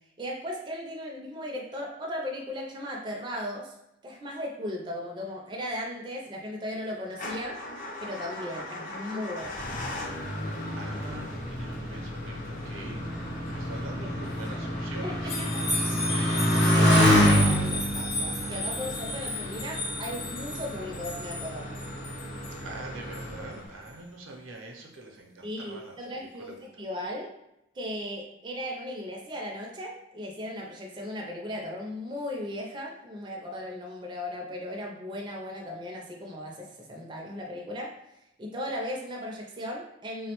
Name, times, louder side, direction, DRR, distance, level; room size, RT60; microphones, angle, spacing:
voice 1, 0.2-3.7 4.0-7.6 8.0-9.6 15.0-15.7 16.1-21.7 25.4-27.3 27.7-37.9 38.4-40.3, left 1 dB, 25° right, -1 dB, 0.4 m, -37 dB
Motor vehicle (road) / Engine starting / Idling, 7.1-24.1, left 1 dB, 40° left, 0.5 m, -38 dB
voice 2, 10.8-15.3 22.6-25.9 26.4-26.6, right 2 dB, 90° right, 2 dB, 0.6 m, -44 dB
Motorcycle, 11.1-20.1 20.8-21.4, equal, 60° left, 0.8 m, -26 dB
sound 1, 15.3-22.6 23.1-23.2, left 1 dB, 85° left, 0.9 m, -34 dB
3.5 x 2.1 x 2.9 m, 0.84 s
head